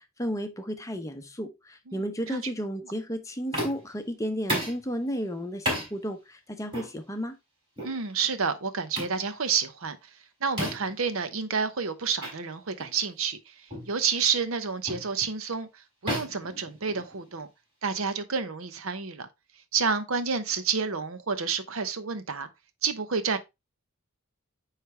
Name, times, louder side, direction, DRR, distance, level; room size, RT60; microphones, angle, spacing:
voice 1, 0.0-7.4, equal, 15° left, 0.7 m, -33 dB
voice 2, 1.9-2.4 7.8-10.0 10.4-13.5 13.9-17.5 17.8-19.3 19.7-22.5 22.8-23.4, right 5 dB, 75° right, 0.8 m, -29 dB
sound 1, 3.5-4.0 4.5-4.8 5.7-5.9 6.7-6.9 7.8-8.0 9.0-9.2 10.6-11.0 12.2-12.4 12.8-13.0 13.7-13.9 14.9-15.1 16.1-17.3, equal, 25° right, 3.9 m, -32 dB
9.4 x 3.3 x 3.2 m
head